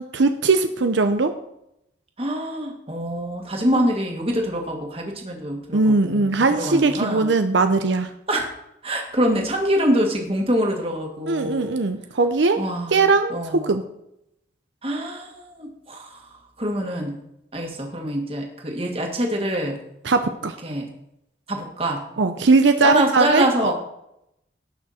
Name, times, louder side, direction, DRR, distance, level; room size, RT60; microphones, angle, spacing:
voice 1, 0.0-1.3 5.7-8.1 11.3-13.8 20.0-20.6 22.2-23.7, right 3 dB, 80° right, 8 dB, 0.7 m, -20 dB
voice 2, 2.2-7.3 8.3-8.5 8.8-11.8 12.6-13.7 14.8-16.1 16.6-17.2 17.5-19.8 20.6-20.9 21.5-22.0 22.8-23.7, equal, 30° right, 2 dB, 2.0 m, -25 dB
18.0 x 6.1 x 4.3 m, 0.81 s
head